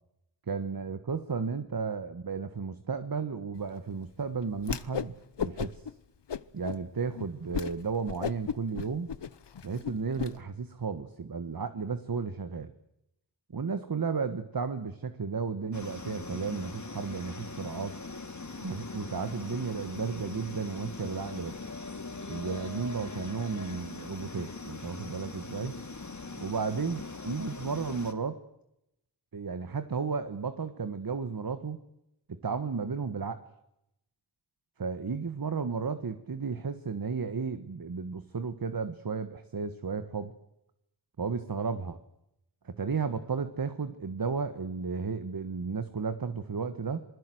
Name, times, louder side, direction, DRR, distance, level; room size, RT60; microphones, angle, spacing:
voice 1, 0.5-5.9 6.5-9.1 9.6-12.7 13.5-18.0 18.6-21.5 22.3-25.7 26.4-28.4 29.3-31.8 32.3-33.4 34.8-40.3 41.2-42.0 42.6-47.0, right 5 dB, 50° right, 11 dB, 1.5 m, -33 dB
Whoosh swoosh swish, 4.6-5.1 5.4-5.9 6.3-6.8 7.2-7.3 7.5-7.7 8.0-10.3, left 7 dB, 70° left, 1.0 m, -34 dB
sound 1, 15.7-28.1, left 3 dB, 40° left, 2.7 m, -41 dB
27.0 x 20.5 x 7.9 m, 0.84 s
wide cardioid pair, 75°, 44 cm